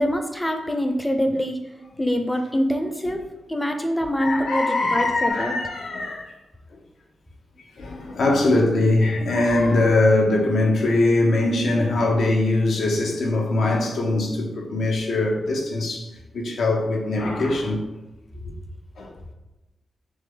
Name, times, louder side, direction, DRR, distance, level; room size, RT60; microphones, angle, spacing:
voice 1, 0.0-1.6 2.0-3.2 3.5-5.5, equal, 10° left, 0.5 m, -24 dB
voice 2, 4.2-6.3 6.7-6.8 7.6-17.8 18.4-18.5 19.0-19.1, left 2 dB, 75° left, 0.8 m, -22 dB
6.1 x 2.1 x 3.8 m
wide cardioid pair, 145°, 0 cm